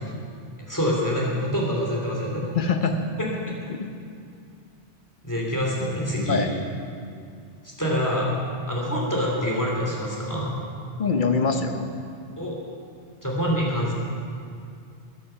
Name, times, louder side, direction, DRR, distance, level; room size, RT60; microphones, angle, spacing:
voice 1, 0.7-2.5 3.2-3.3 5.2-6.4 7.6-8.3 8.7-10.6 12.4-12.6 13.2-13.9, equal, 15° left, -4 dB, 2.7 m, -26 dB
voice 2, 2.4-3.1 3.7-3.9 6.3-6.5 11.0-11.9, left 4 dB, 50° left, 6 dB, 1.0 m, -24 dB
14.0 x 10.5 x 5.7 m, 2.3 s
omnidirectional pair, 1.2 m